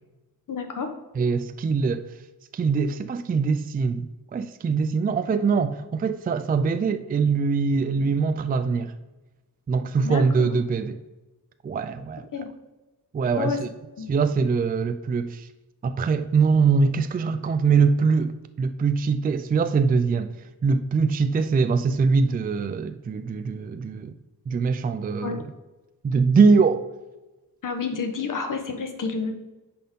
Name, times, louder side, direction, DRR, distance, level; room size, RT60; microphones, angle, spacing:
voice 1, 0.5-1.0 10.0-10.5 12.3-12.5 13.4-13.6 14.0-14.1 25.2-25.4 27.6-29.3, left 5 dB, 65° left, 1.1 m, -29 dB
voice 2, 1.2-2.2 2.5-8.9 9.7-11.0 11.6-12.2 13.1-13.7 14.1-15.5 15.8-18.3 18.6-20.3 20.6-24.1 24.5-25.4 26.0-26.9, right 5 dB, 25° right, 0.4 m, -23 dB
9.2 x 4.4 x 5.4 m
wide cardioid pair, 110°, 35 cm